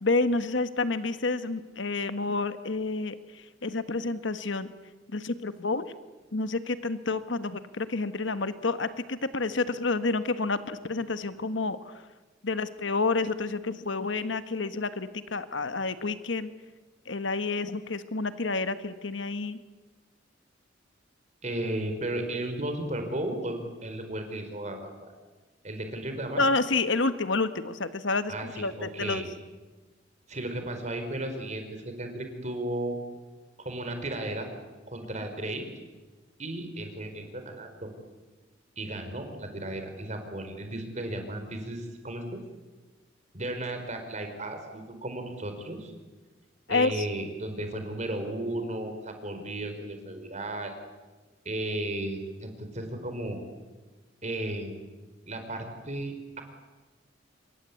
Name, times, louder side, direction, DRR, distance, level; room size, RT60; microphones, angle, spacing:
voice 1, 0.0-4.7 5.1-5.9 6.3-12.0 12.4-16.5 17.1-19.6 26.4-29.2 46.7-47.0, left 3 dB, 70° left, 11 dB, 1.4 m, -29 dB
voice 2, 21.4-24.9 25.6-26.4 28.3-29.3 30.3-33.0 33.6-34.5 34.9-35.6 36.4-37.9 38.8-42.4 43.3-45.9 46.7-50.7 51.4-53.4 54.2-54.8 55.3-56.4, right 1 dB, 40° right, 6 dB, 4.7 m, -34 dB
27.0 x 23.0 x 8.5 m, 1.2 s
head